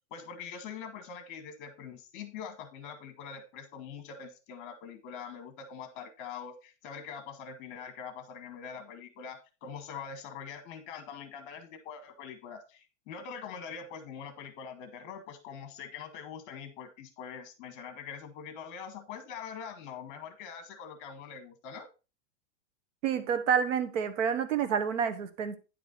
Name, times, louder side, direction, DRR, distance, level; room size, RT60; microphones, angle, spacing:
voice 1, 0.1-21.9, left 6 dB, 45° left, 1.8 m, -43 dB
voice 2, 23.0-25.6, right 7 dB, 85° right, 1.4 m, -28 dB
10.0 x 4.9 x 4.0 m
supercardioid pair, 165°, 37 cm